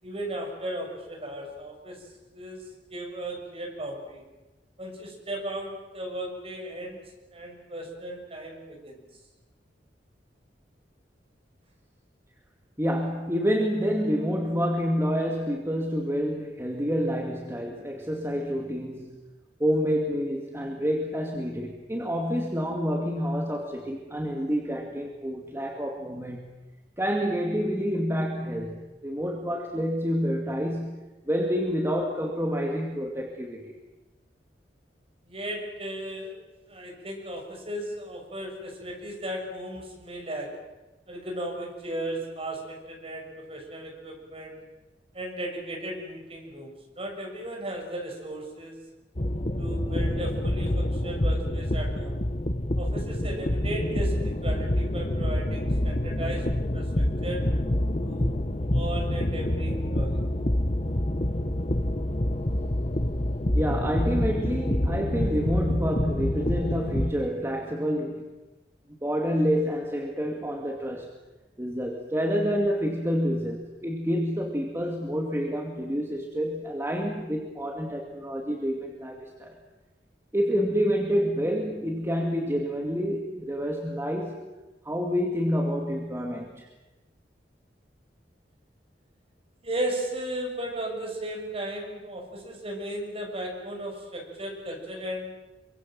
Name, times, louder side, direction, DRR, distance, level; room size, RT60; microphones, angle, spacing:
voice 1, 0.0-4.2 4.8-7.0 7.3-9.0 35.2-36.4 36.7-40.6 41.1-44.6 45.1-48.8 49.6-52.2 52.8-57.5 58.0-58.3 58.7-60.2 89.6-95.5, right 1 dB, 35° right, 1 dB, 6.9 m, -36 dB
voice 2, 12.8-19.1 19.6-26.5 27.0-33.7 63.5-68.3 69.0-71.1 71.6-79.6 80.3-84.4 84.8-86.7, equal, 15° right, 1 dB, 2.4 m, -28 dB
sound 1, 49.2-67.1, left 1 dB, 40° left, 1.3 m, -27 dB
27.0 x 24.0 x 7.7 m, 1.1 s
head